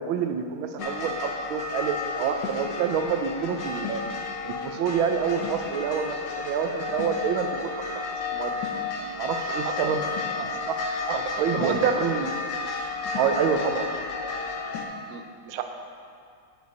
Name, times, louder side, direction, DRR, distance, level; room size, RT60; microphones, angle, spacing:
voice 1, 0.0-4.0 4.4-8.7 9.2-10.0 10.4-12.3 13.1-13.9, right 7 dB, 85° right, 7 dB, 1.4 m, -28 dB
sound 1, 0.8-14.8, left 3 dB, 65° left, 1.5 m, -32 dB
voice 2, 11.5-12.0 15.1-15.6, right 9 dB, 70° right, 6 dB, 0.9 m, -27 dB
8.0 x 6.8 x 5.3 m, 2.3 s
omnidirectional pair, 2.2 m